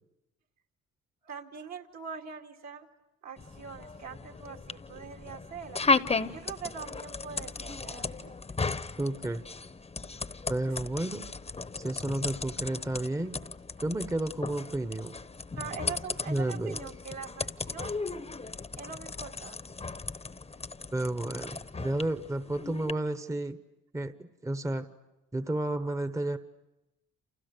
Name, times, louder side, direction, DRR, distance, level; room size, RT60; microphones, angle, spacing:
voice 1, 1.2-2.9 3.2-5.8 6.3-8.4 10.7-10.8 15.5-18.0 18.8-19.6, right 6 dB, 65° right, 3 dB, 2.5 m, -43 dB
sound 1, 3.4-22.9, left 3 dB, 20° left, 0.9 m, -36 dB
voice 2, 9.0-9.4 10.5-11.3 11.8-13.4 13.8-15.1 16.3-16.8 20.9-23.6 23.9-24.9 25.3-26.4, right 1 dB, 10° right, 11 dB, 1.0 m, -32 dB
29.5 x 28.0 x 6.8 m, 0.99 s
cardioid pair, 90°, 30 cm